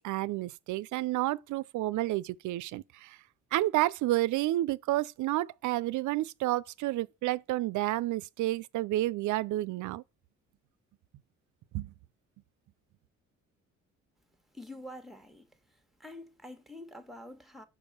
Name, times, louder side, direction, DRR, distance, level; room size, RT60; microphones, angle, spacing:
voice 1, 0.0-3.2 3.5-10.0 11.7-11.9, right 16 dB, 80° right, 0.5 m, -30 dB
voice 2, 14.5-15.5 16.0-17.6, left 1 dB, ahead, 1.2 m, -46 dB
5.3 x 4.3 x 5.4 m
cardioid pair, 90°, 30 cm